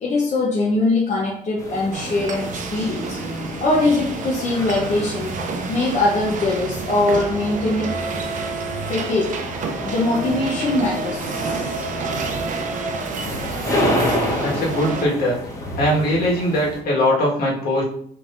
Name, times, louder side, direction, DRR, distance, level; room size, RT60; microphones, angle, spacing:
voice 1, 0.0-3.2 3.6-5.4 5.7-8.0 8.9-9.4 9.8-12.0, left 2 dB, 45° left, -3 dB, 0.9 m, -22 dB
sound 1, 1.6-16.8, left 1 dB, 20° left, 1.1 m, -30 dB
sound 2, 1.9-15.1, right 3 dB, 50° right, 0.7 m, -29 dB
voice 2, 14.4-15.4 15.8-17.8, equal, 65° left, -3 dB, 1.7 m, -20 dB
5.2 x 3.4 x 2.6 m, 0.64 s
cardioid pair, 110°, 17 cm